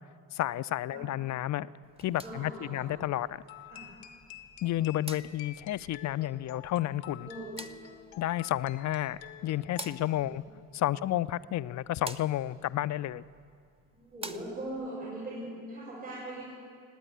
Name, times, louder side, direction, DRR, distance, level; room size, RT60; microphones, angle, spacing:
voice 1, 0.3-1.7 2.0-3.4 4.6-7.3 8.2-10.4 10.7-13.2, left 13 dB, 40° left, 17 dB, 0.4 m, -31 dB
sound 1, 1.8-14.9, right 2 dB, 15° right, 0.8 m, -50 dB
voice 2, 2.2-2.9 3.7-3.9 7.3-7.5 10.1-10.3 10.9-11.0 13.9-16.4, right 1 dB, 85° right, -11 dB, 4.8 m, -40 dB
sound 2, 3.5-10.3, left 11 dB, 75° left, 0.9 m, -50 dB
18.5 x 8.9 x 8.1 m, 2.2 s
hypercardioid pair, 50°, 45 cm